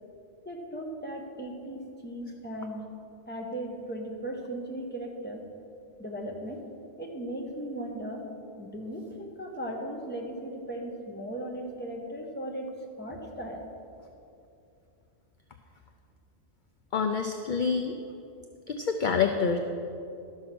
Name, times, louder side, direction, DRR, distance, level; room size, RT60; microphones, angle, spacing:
voice 1, 0.4-2.8 3.3-5.4 6.0-6.6 7.0-8.2 8.6-12.7 13.0-13.7, right 1 dB, 10° left, -1 dB, 1.2 m, -37 dB
voice 2, 16.9-17.9 18.7-19.6, left 6 dB, 55° left, 5 dB, 0.6 m, -27 dB
12.5 x 6.6 x 6.0 m, 2.6 s
omnidirectional pair, 1.2 m